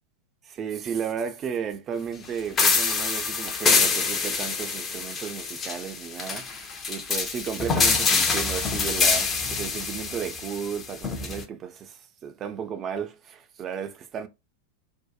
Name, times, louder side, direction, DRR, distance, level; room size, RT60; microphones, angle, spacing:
voice 1, 0.5-14.3, right 7 dB, 30° right, 0.4 m, -34 dB
sound 1, 2.6-11.4, left 4 dB, 25° left, 0.6 m, -25 dB
2.7 x 2.1 x 2.3 m
figure-of-eight pair, 90°, 0 cm